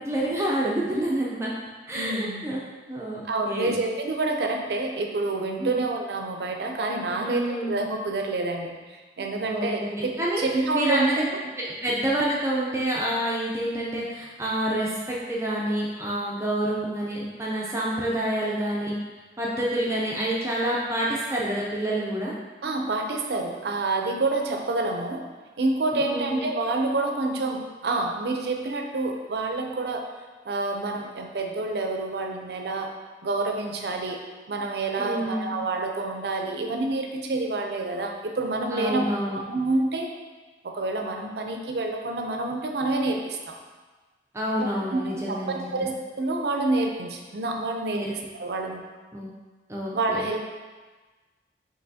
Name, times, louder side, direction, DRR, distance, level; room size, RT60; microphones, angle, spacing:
voice 1, 0.0-1.5 1.9-2.6 2.9-3.8 5.6-5.8 7.1-7.7 9.4-10.4 10.7-11.3 11.6-18.9 19.4-22.3 25.9-26.4 35.0-35.6 38.7-39.4 44.3-45.9 47.9-48.1 49.1-49.3 49.7-50.2, right 1 dB, 15° right, -5 dB, 0.4 m, -28 dB
voice 2, 1.9-2.4 3.2-10.1 10.4-11.1 22.6-25.3 25.6-30.1 30.4-32.9 33.2-34.2 34.5-39.0 39.4-40.1 40.6-43.6 44.6-48.8 49.9-50.4, right 2 dB, 70° right, 3 dB, 0.5 m, -28 dB
5.5 x 3.2 x 2.7 m, 1.3 s
head